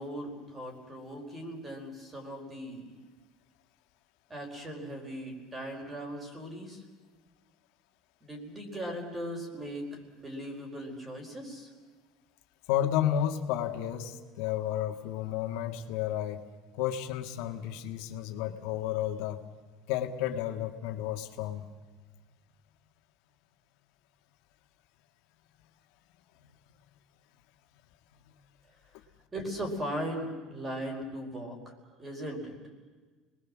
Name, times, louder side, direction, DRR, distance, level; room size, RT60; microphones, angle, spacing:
voice 1, 0.0-2.9 4.3-6.8 8.2-11.7 29.3-31.7 32.0-32.6, equal, 15° right, 3 dB, 4.6 m, -38 dB
voice 2, 12.7-16.5 16.7-19.4 19.9-21.6, left 11 dB, 75° left, 5 dB, 1.8 m, -32 dB
30.0 x 21.0 x 7.5 m, 1.4 s
cardioid pair, 170°, 0 cm